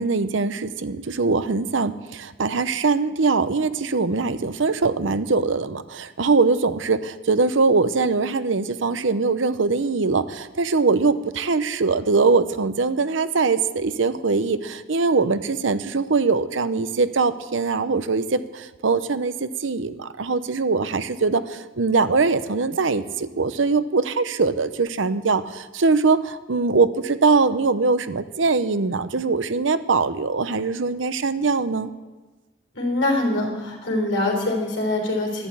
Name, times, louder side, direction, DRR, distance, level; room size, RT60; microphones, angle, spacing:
voice 1, 0.0-31.9, right 4 dB, 75° right, 13 dB, 0.7 m, -22 dB
voice 2, 32.8-35.5, left 2 dB, 75° left, 1 dB, 3.7 m, -24 dB
11.5 x 11.5 x 8.6 m, 1.2 s
head